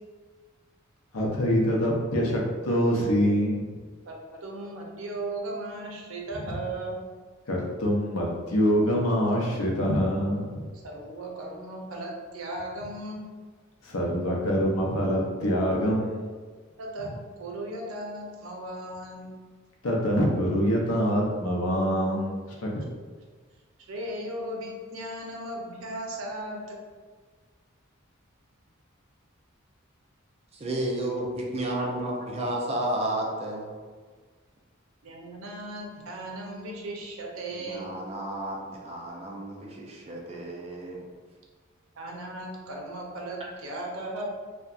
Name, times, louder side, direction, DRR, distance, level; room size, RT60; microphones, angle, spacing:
voice 1, 1.1-3.6 7.5-10.6 13.8-16.4 19.8-22.8, equal, 90° left, -1 dB, 0.6 m, -25 dB
voice 2, 4.4-7.0 10.8-13.2 16.8-19.4 23.9-26.8 35.0-37.9 42.0-44.3, right 1 dB, 85° right, -1 dB, 0.6 m, -36 dB
voice 3, 30.5-33.7 37.5-41.1, right 1 dB, 30° right, -2 dB, 0.5 m, -32 dB
2.7 x 2.2 x 2.4 m, 1.5 s
head